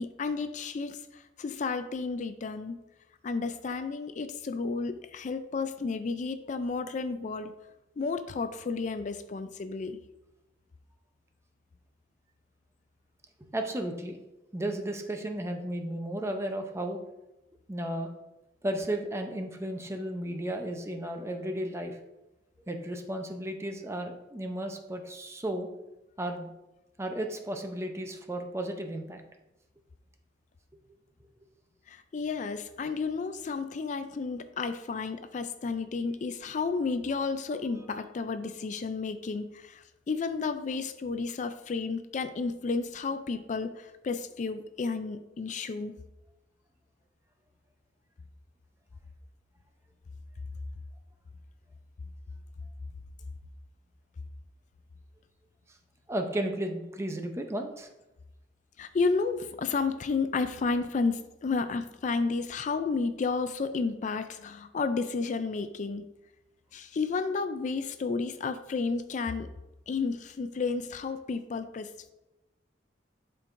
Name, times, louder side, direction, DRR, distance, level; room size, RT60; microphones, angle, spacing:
voice 1, 0.0-2.8 3.2-7.5 8.0-10.0 31.9-45.9 58.8-66.0 66.7-69.5 69.9-71.9, left 4 dB, 45° left, 10 dB, 0.4 m, -32 dB
voice 2, 13.5-14.2 14.5-17.0 17.7-18.1 18.6-22.0 22.7-25.7 26.2-26.5 27.0-29.2 56.1-57.9, right 1 dB, 15° right, 5 dB, 0.6 m, -34 dB
11.0 x 4.5 x 2.6 m, 0.98 s
head